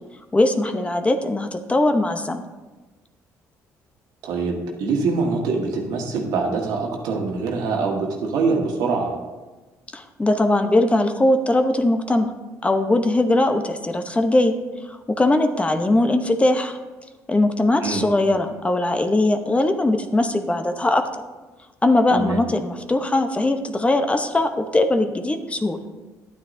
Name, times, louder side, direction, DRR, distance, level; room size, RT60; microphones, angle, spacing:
voice 1, 0.3-2.4 9.9-12.3 12.6-14.5 14.9-16.8 17.3-21.1 21.8-25.8, left 2 dB, 20° left, 7 dB, 0.7 m, -20 dB
voice 2, 4.2-9.2 17.8-18.0 22.1-22.4, right 4 dB, 75° right, 1 dB, 1.5 m, -24 dB
10.5 x 9.2 x 2.6 m, 1.2 s
supercardioid pair, 75°, 7 cm